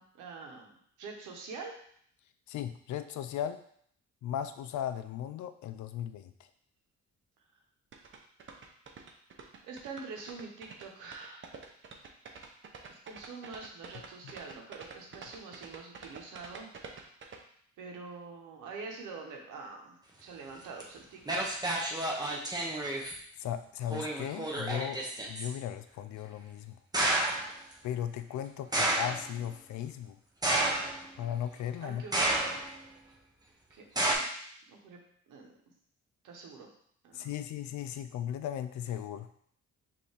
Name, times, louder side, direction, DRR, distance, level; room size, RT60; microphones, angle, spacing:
voice 1, 0.0-1.7 9.6-11.5 12.9-16.7 17.8-21.7 31.8-32.4 33.7-34.3 34.7-35.0 35.3-35.5 36.2-36.7 37.0-37.4, right 4 dB, 90° right, 1 dB, 1.0 m, -45 dB
voice 2, 2.5-3.6 4.2-6.3 14.2-14.3 23.4-25.0 25.3-26.8 27.8-30.2 31.2-32.1 37.1-39.3, left 10 dB, 70° left, 10 dB, 0.5 m, -36 dB
sound 1, 7.9-17.4, right 5 dB, 40° right, 0.7 m, -48 dB
sound 2, 20.8-20.9 21.3-23.2 23.9-25.5 26.9-27.5 28.7-29.3 30.4-31.2 32.1-32.8 34.0-34.2, right 1 dB, 15° right, 0.9 m, -30 dB
5.4 x 2.7 x 3.3 m, 0.63 s
cardioid pair, 90°, 30 cm